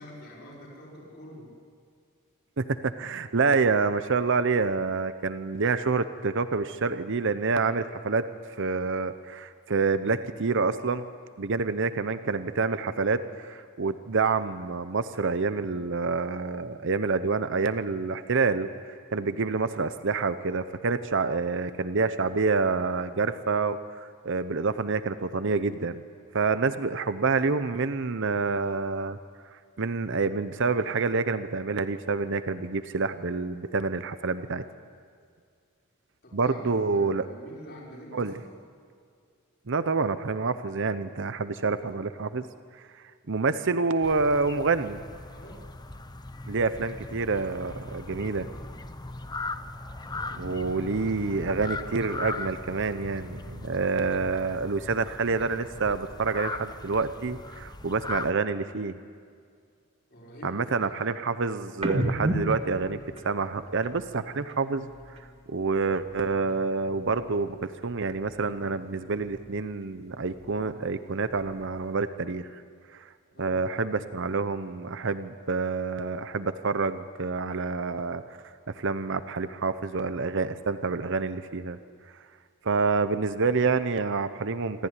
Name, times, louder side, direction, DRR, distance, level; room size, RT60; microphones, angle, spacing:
voice 1, 0.0-1.5 36.2-36.6 36.9-38.6 45.3-45.7 50.3-50.7 60.1-60.9 73.3-73.6, equal, 50° left, -4 dB, 5.4 m, -46 dB
voice 2, 2.6-8.3 8.6-11.0 11.4-18.7 19.1-26.0 26.3-29.2 29.8-34.6 36.3-37.3 38.1-38.4 39.7-42.4 43.3-45.0 46.5-48.5 50.4-58.9 60.4-63.0 63.2-64.9 65.5-72.5 72.9-73.1 73.4-78.2 78.7-81.8 82.6-84.9, right 4 dB, 60° right, 12 dB, 0.8 m, -27 dB
sound 1, 44.0-58.3, left 2 dB, 20° left, 0.8 m, -39 dB
sound 2, 61.8-65.4 65.7-67.5 67.8-69.6 70.0-71.9, right 1 dB, 30° right, 2.0 m, -36 dB
26.5 x 14.0 x 9.8 m, 2.2 s
head